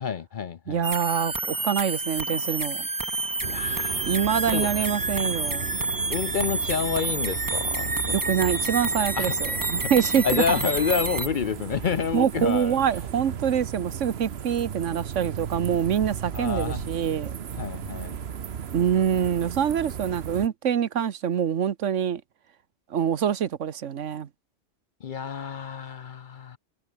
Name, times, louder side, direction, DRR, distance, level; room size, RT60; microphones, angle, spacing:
voice 1, 0.0-0.9 3.5-4.1 4.5-4.7 6.1-8.2 9.2-9.4 9.8-9.9 10.2-12.8 16.3-16.8 17.6-18.2 25.0-26.6, left 6 dB, 50° left, 0.7 m, -29 dB
voice 2, 0.7-2.9 4.1-5.9 8.1-10.6 12.1-17.4 18.7-22.2 22.9-24.3, right 8 dB, 80° right, 1.3 m, -25 dB
sound 1, 0.8-11.3, right 2 dB, 20° right, 1.0 m, -29 dB
sound 2, 3.4-20.5, right 8 dB, 60° right, 1.2 m, -36 dB
omnidirectional pair, 1.2 m